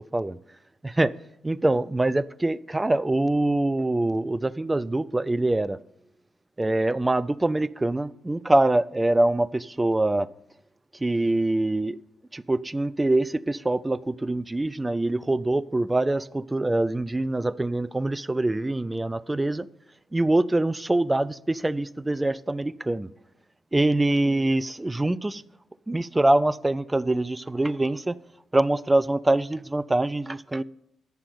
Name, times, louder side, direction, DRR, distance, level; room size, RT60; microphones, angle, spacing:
voice 1, 0.8-1.2 1.4-5.8 6.6-10.3 11.0-12.0 12.3-19.7 20.1-23.1 23.7-25.4 25.9-28.1 28.5-30.6, right 2 dB, 15° right, 0.4 m, -24 dB
9.3 x 7.0 x 6.9 m
hypercardioid pair, 40°, 0 cm